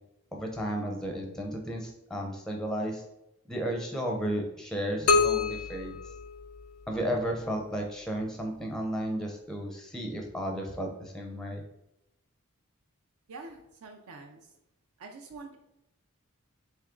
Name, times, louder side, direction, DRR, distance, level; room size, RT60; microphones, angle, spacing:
voice 1, 0.3-3.0 3.5-6.0 6.9-11.6, equal, 5° left, 2 dB, 0.5 m, -33 dB
sound 1, 5.1-7.0, left 4 dB, 80° left, 0.4 m, -27 dB
voice 2, 13.3-14.5 15.0-15.6, right 3 dB, 70° right, 3 dB, 0.4 m, -46 dB
3.5 x 3.0 x 3.6 m, 0.86 s
head